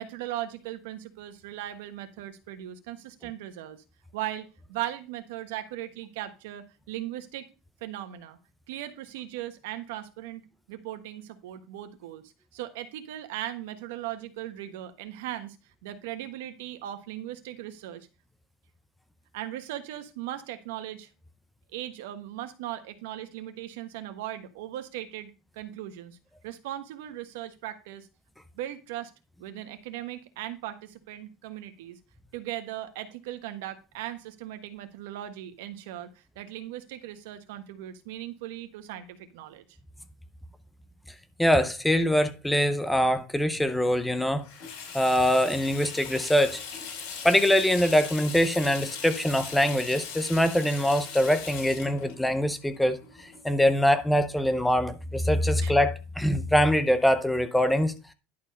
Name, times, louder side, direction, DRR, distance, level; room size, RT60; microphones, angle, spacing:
voice 1, 0.0-3.8 4.1-7.4 7.8-8.4 8.7-10.4 10.7-15.6 15.8-18.1 19.3-21.1 21.7-26.2 26.4-28.1 28.6-29.1 29.4-32.0 32.3-39.6 55.6-55.7, right 13 dB, 80° right, 1.3 m, -38 dB
voice 2, 41.4-44.4 44.9-46.6 47.2-57.9, equal, 5° left, 0.5 m, -23 dB
Water tap faucet / Sink (filling or washing), 44.4-53.7, left 6 dB, 65° left, 4.5 m, -40 dB
11.0 x 4.5 x 5.3 m
cardioid pair, 170°, 0 cm